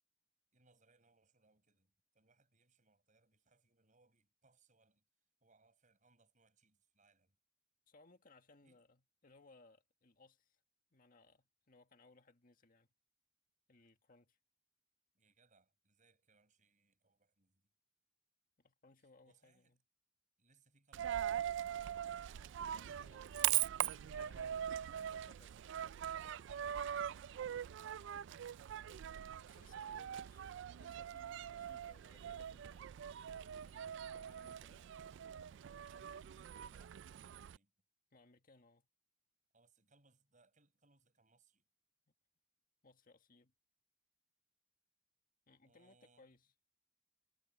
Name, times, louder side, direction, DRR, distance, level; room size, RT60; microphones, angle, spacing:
voice 1, 0.5-5.0 5.4-7.4 8.6-8.8 15.1-17.7 19.0-19.8 20.4-22.4 24.7-25.0 35.8-37.7 39.5-41.6 45.6-46.3, right 3 dB, 40° right, 7.2 m, -74 dB
voice 2, 7.9-10.6 10.9-12.9 13.7-14.4 18.6-19.8 22.7-24.8 25.3-25.7 27.1-27.4 29.5-30.5 30.8-32.9 33.6-34.9 38.1-38.9 42.8-43.5 45.5-46.5, left 3 dB, 45° left, 1.7 m, -66 dB
Coin (dropping), 20.9-37.6, right 10 dB, 65° right, 0.3 m, -42 dB
head